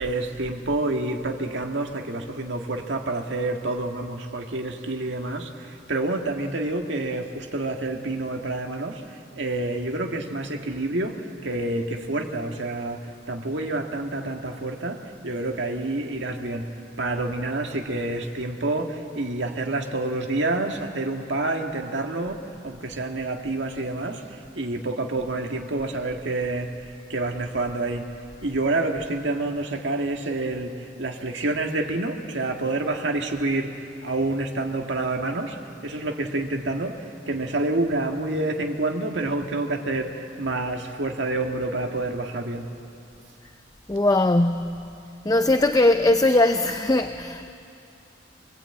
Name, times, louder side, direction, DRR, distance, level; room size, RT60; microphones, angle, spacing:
voice 1, 0.0-35.6 35.8-42.7, right 2 dB, 80° right, 2 dB, 1.8 m, -28 dB
voice 2, 43.9-44.8 45.2-47.5, left 2 dB, 20° left, 8 dB, 0.5 m, -20 dB
25.5 x 20.0 x 8.7 m, 2.7 s
head